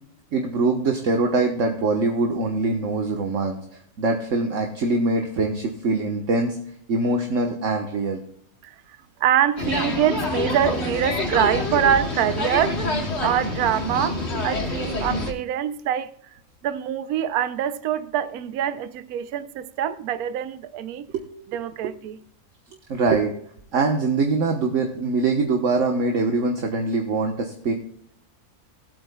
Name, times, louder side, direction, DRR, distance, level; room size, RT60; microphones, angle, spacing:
voice 1, 0.3-3.6 4.0-6.6 6.9-8.2 21.1-21.6 22.9-23.3 23.7-27.7, right 3 dB, 60° right, 1.5 m, -23 dB
voice 2, 9.2-12.8 13.2-16.1 16.6-21.1 21.5-22.2, right 10 dB, 80° right, 1.1 m, -24 dB
sound 1, 9.6-15.3, left 2 dB, 45° left, 2.3 m, -26 dB
19.0 x 8.6 x 2.2 m
omnidirectional pair, 1.5 m